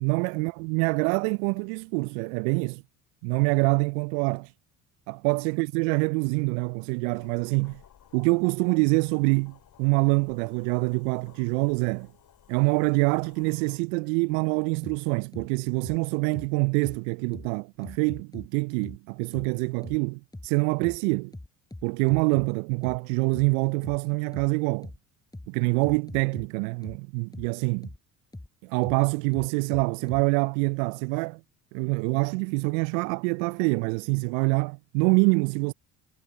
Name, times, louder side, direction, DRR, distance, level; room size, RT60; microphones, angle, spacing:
voice 1, 0.0-2.8 3.2-4.5 5.1-7.8 8.1-12.1 12.5-21.3 21.8-24.9 25.5-27.9 28.6-31.4 31.7-35.7, right 33 dB, 65° right, 0.6 m, -25 dB
sound 1, 7.1-13.8, left 10 dB, 45° left, 2.5 m, -57 dB
sound 2, 14.8-15.0 15.3-15.5 15.8-16.0 16.3-16.5 16.8-17.0 17.3-17.5 17.8-18.5 18.8-19.0 19.3-19.5 19.8-20.0 20.3-20.5 20.8-21.0 21.3-22.5 22.8-23.0 23.3-23.5 23.8-24.0 24.3-24.5 24.8-25.0 25.3-25.5 25.8-26.5 26.8-27.0 27.3-27.5 27.8-28.0 28.3-28.5 28.8-29.0 29.3-30.2, left 1 dB, 10° left, 6.5 m, -41 dB
hypercardioid pair, 60°, 42 cm